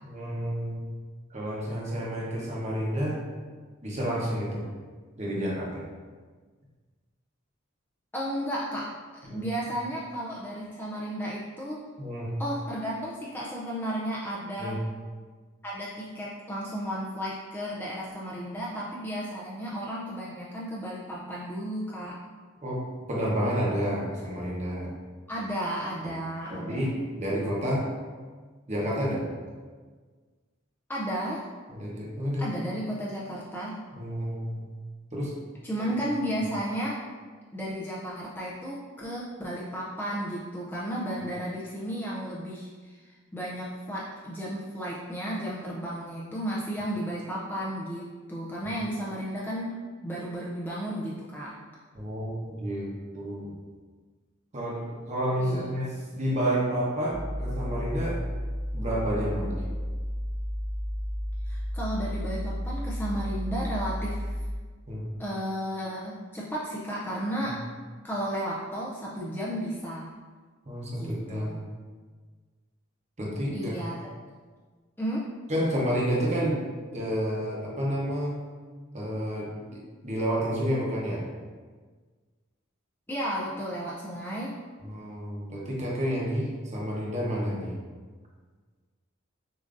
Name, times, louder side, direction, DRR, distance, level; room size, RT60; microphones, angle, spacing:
voice 1, 0.0-0.8 1.3-3.2 3.8-4.6 5.2-5.8 9.2-9.4 12.0-12.3 14.6-14.8 22.6-22.8 23.1-24.9 26.5-27.9 28.7-29.2 31.7-32.4 33.9-34.6 35.1-35.4 51.9-53.5 54.5-58.2 58.7-59.6 64.9-65.1 67.4-67.5 70.7-71.6 73.2-73.8 75.5-76.6 76.9-78.4 78.9-81.2 84.8-87.7, equal, 35° right, -4 dB, 0.9 m, -30 dB
voice 2, 8.1-11.8 12.4-14.8 15.6-22.2 25.3-26.9 30.9-31.4 32.4-33.8 35.6-37.0 37.5-51.5 55.4-55.7 61.5-64.4 65.2-67.6 68.0-70.1 71.0-71.5 73.5-73.9 75.0-75.3 83.1-84.5, equal, 10° left, -5 dB, 0.4 m, -33 dB
sound 1, 57.1-64.6, equal, 35° left, 1.4 m, -32 dB
6.7 x 2.6 x 2.5 m, 1.5 s
head